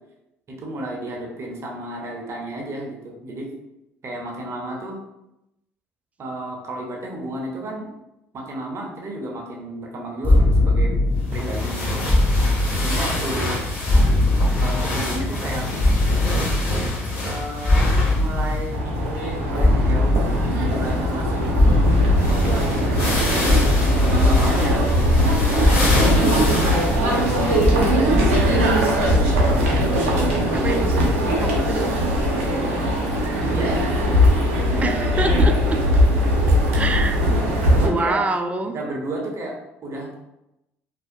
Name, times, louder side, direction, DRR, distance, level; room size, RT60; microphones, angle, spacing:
voice 1, 0.5-3.5 4.0-5.0 6.2-7.9 8.3-10.9 11.3-11.9 12.4-12.5 12.8-13.6 14.6-15.7 17.2-18.8 19.4-21.7 22.3-23.6 24.1-25.1 26.1-27.2 28.6-29.6 33.3-33.9 34.5-35.0 37.2-38.3 38.7-40.2, right 1 dB, 40° right, -1 dB, 0.7 m, -32 dB
sound 1, 10.2-29.1, left 2 dB, 25° left, 0.6 m, -22 dB
sound 2, 11.3-18.8 19.0-19.1 21.7-21.8 22.0-28.6 29.2-29.3 30.5-30.6, left 1 dB, 80° left, 0.9 m, -28 dB
sound 3, 18.7-37.9, equal, 80° right, 0.6 m, -20 dB
voice 2, 30.5-31.9 34.8-35.8 36.7-37.2 37.8-38.8, right 3 dB, 20° right, 6 dB, 0.3 m, -26 dB
2.6 x 2.1 x 2.5 m, 0.89 s
hypercardioid pair, 60°, 7 cm